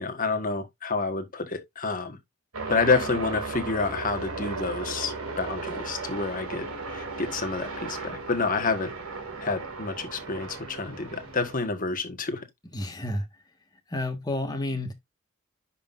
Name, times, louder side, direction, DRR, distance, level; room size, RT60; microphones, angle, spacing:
voice 1, 0.0-2.2 2.7-8.9 9.4-12.4, left 4 dB, 40° left, 1.5 m, -29 dB
sound 1, 2.5-11.7, right 3 dB, 80° right, 2.6 m, -36 dB
voice 2, 12.7-13.3 13.9-14.9, left 1 dB, 20° left, 1.6 m, -30 dB
10.0 x 5.7 x 2.6 m
head